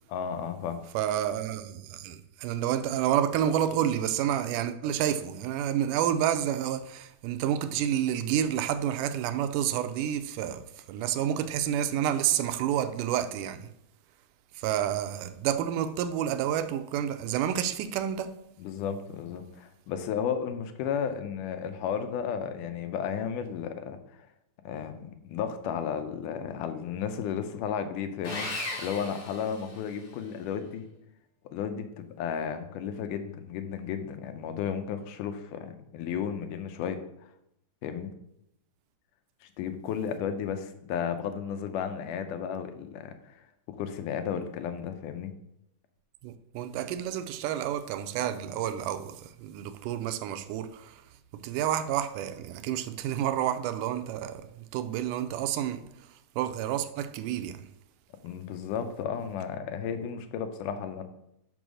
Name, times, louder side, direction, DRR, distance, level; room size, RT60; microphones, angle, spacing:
voice 1, 0.1-0.8 18.6-24.0 24.6-30.9 31.5-37.0 37.8-38.1 39.4-43.1 43.8-45.3 58.2-61.0, left 7 dB, 80° left, 2.3 m, -33 dB
voice 2, 0.9-13.7 14.6-18.4 46.2-51.0 51.3-55.8 56.4-57.7, right 10 dB, 85° right, 2.1 m, -29 dB
Sawing, 28.2-30.1, left 2 dB, 35° left, 1.7 m, -36 dB
6.1 x 5.4 x 6.3 m
omnidirectional pair, 3.7 m